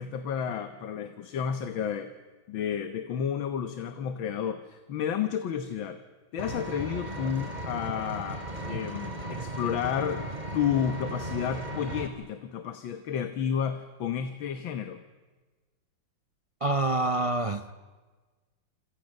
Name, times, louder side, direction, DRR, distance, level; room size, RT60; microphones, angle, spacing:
voice 1, 0.0-2.1 2.5-6.0 6.3-10.3 10.5-15.0, left 8 dB, 75° left, 9 dB, 1.9 m, -31 dB
Vehicle, 6.4-12.1, right 1 dB, 20° right, 2.6 m, -36 dB
voice 2, 16.6-17.7, right 2 dB, 55° right, 8 dB, 0.3 m, -26 dB
27.5 x 27.0 x 6.6 m, 1.3 s
omnidirectional pair, 2.2 m